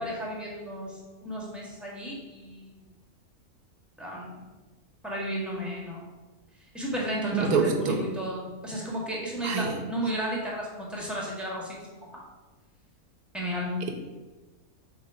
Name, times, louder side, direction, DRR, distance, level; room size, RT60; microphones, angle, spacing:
voice 1, 0.0-2.7 4.0-4.3 5.0-6.0 6.7-12.2 13.3-13.8, equal, ahead, -4 dB, 1.6 m, -33 dB
voice 2, 7.3-8.0 9.4-9.7, right 5 dB, 90° right, 5 dB, 1.4 m, -25 dB
7.3 x 3.4 x 5.0 m, 1.2 s
omnidirectional pair, 1.5 m